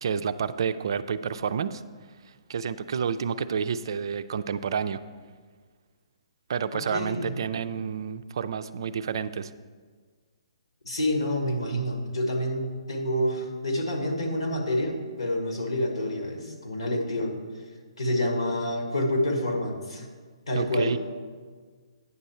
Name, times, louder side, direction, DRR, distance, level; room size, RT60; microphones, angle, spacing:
voice 1, 0.0-1.8 2.5-5.0 6.5-9.5 20.5-21.0, right 6 dB, 55° right, 12 dB, 0.4 m, -29 dB
voice 2, 6.9-7.3 10.8-17.3 18.0-20.1 20.5-20.9, left 1 dB, 70° left, 3 dB, 1.6 m, -28 dB
9.4 x 7.0 x 4.3 m, 1.6 s
figure-of-eight pair, 130°, 3 cm